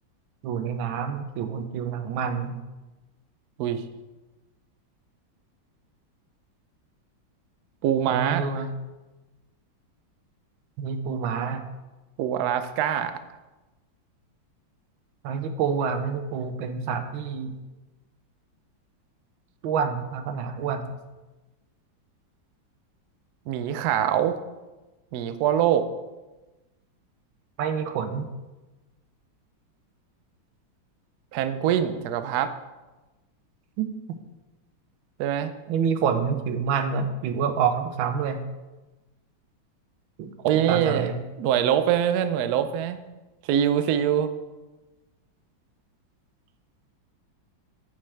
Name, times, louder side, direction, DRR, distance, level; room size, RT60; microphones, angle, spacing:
voice 1, 0.4-2.5 8.1-8.7 10.8-11.7 15.2-17.6 19.6-21.0 27.6-28.3 33.8-33.9 35.7-38.5 40.2-41.2, right 6 dB, 90° right, 8 dB, 1.5 m, -27 dB
voice 2, 7.8-8.5 12.2-13.2 23.5-24.4 25.1-25.9 31.3-32.5 35.2-35.5 40.4-41.1 41.4-43.0 43.4-44.3, right 10 dB, 70° right, 10 dB, 0.9 m, -24 dB
9.1 x 6.6 x 3.4 m, 1.1 s
omnidirectional pair, 2.1 m